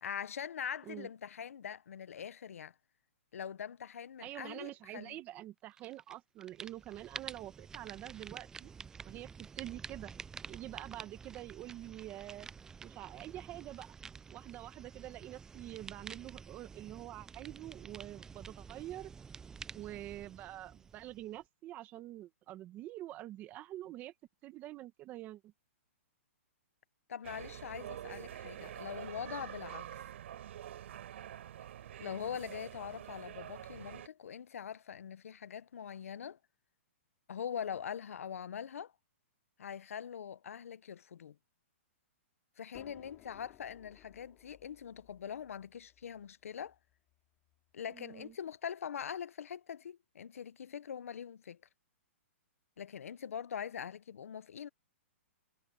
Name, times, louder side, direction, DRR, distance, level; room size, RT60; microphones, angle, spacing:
voice 1, 0.0-2.7 3.3-5.2 27.1-30.0 32.0-36.4 37.3-38.9 39.6-41.4 42.6-46.8 47.7-51.6 52.8-54.7, left 8 dB, 80° left, 0.8 m, -43 dB
voice 2, 4.2-8.7 9.0-10.1 10.5-12.5 12.8-13.9 14.3-19.1 19.7-24.1 24.4-25.4 47.9-48.3, right 14 dB, 25° right, 1.5 m, -46 dB
sound 1, 5.8-6.1 6.4-21.4, right 5 dB, 10° right, 0.4 m, -49 dB
sound 2, 27.2-34.1, right 11 dB, 60° right, 4.0 m, -46 dB
sound 3, 42.7-48.3, left 16 dB, 25° left, 3.1 m, -62 dB
hypercardioid pair, 155°, 7 cm